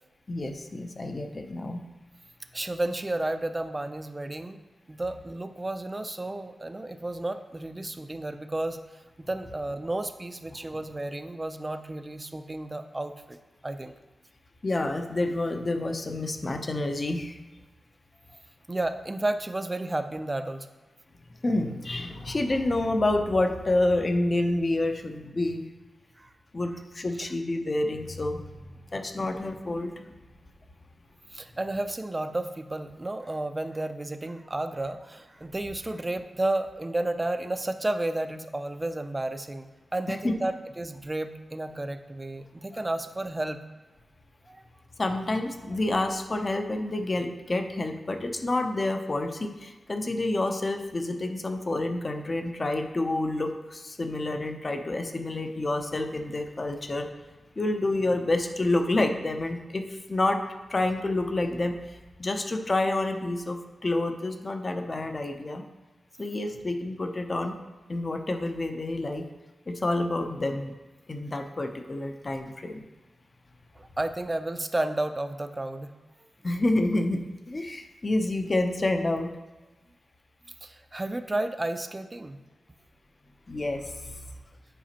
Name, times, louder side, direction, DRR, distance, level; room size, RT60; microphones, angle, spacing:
voice 1, 0.3-1.8 14.6-17.4 21.4-25.6 26.5-30.1 40.1-40.3 42.7-42.8 45.0-57.1 57.6-60.4 60.7-65.6 66.2-67.5 67.9-69.2 69.7-70.7 71.1-72.8 76.4-79.3 83.5-84.1, left 2 dB, 30° left, 6 dB, 0.6 m, -28 dB
voice 2, 2.5-4.6 4.9-8.8 9.2-13.4 13.6-13.9 18.7-20.7 26.2-26.3 31.3-43.6 44.5-44.6 73.8-75.9 80.6-82.4, right 2 dB, 20° right, 9 dB, 0.4 m, -32 dB
10.0 x 5.0 x 2.9 m, 1.2 s
wide cardioid pair, 135°, 0 cm